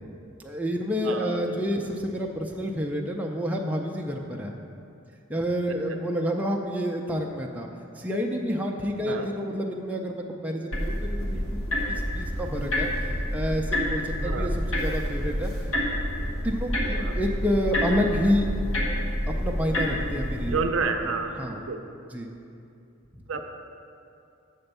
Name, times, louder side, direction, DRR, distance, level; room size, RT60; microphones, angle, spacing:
voice 1, 0.4-4.6 5.3-7.7 8.0-15.5 16.2-18.5 19.3-20.6 21.4-21.6 22.1-22.3 23.1-23.4, equal, 5° right, 0 dB, 0.4 m, -29 dB
voice 2, 1.0-1.6 9.0-9.3 14.2-14.5 16.9-17.2 20.5-21.8 23.3-23.4, right 4 dB, 65° right, 5 dB, 0.5 m, -30 dB
sound 1, 10.7-20.6, equal, 70° left, 1.2 m, -28 dB
6.9 x 4.4 x 6.6 m, 2.6 s
head